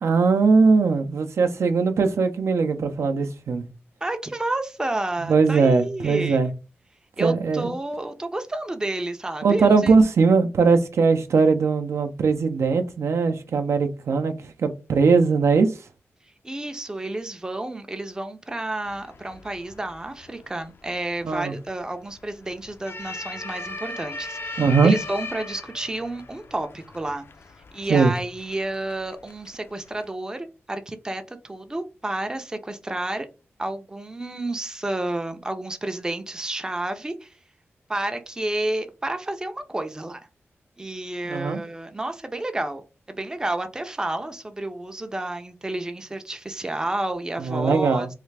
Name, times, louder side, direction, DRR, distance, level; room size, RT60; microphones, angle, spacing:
voice 1, 0.0-3.6 5.2-6.5 7.2-7.7 9.4-15.7 21.2-21.5 24.6-24.9 27.9-28.1 41.2-41.6 47.4-48.1, right 4 dB, 80° right, 0.5 m, -20 dB
voice 2, 4.0-6.4 7.2-9.9 16.4-27.3 27.7-33.3 33.6-37.3 37.9-40.2 40.8-42.8 43.1-48.1, right 2 dB, 15° right, 0.4 m, -30 dB
sound 1, 18.8-30.1, left 3 dB, 55° left, 0.4 m, -39 dB
3.2 x 2.4 x 3.2 m
wide cardioid pair, 115°, 5 cm